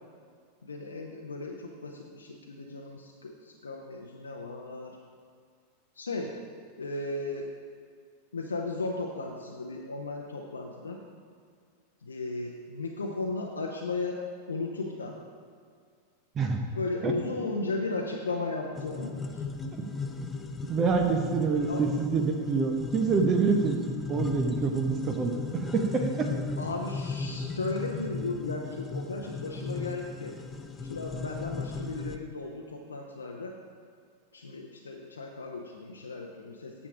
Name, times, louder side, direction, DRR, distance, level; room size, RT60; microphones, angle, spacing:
voice 1, 0.6-5.0 6.0-6.3 6.8-7.5 8.3-11.0 12.0-14.2 14.5-15.2 16.7-19.4 21.7-21.8 26.6-30.3 30.8-33.5 34.3-36.7, left 3 dB, 75° left, 0 dB, 0.7 m, -35 dB
sound 1, 18.8-32.2, left 3 dB, 15° left, 0.6 m, -36 dB
voice 2, 20.7-23.8 24.1-26.3, right 4 dB, 25° right, 4 dB, 0.8 m, -26 dB
8.8 x 7.1 x 4.9 m, 2.1 s
figure-of-eight pair, 90°, 0 cm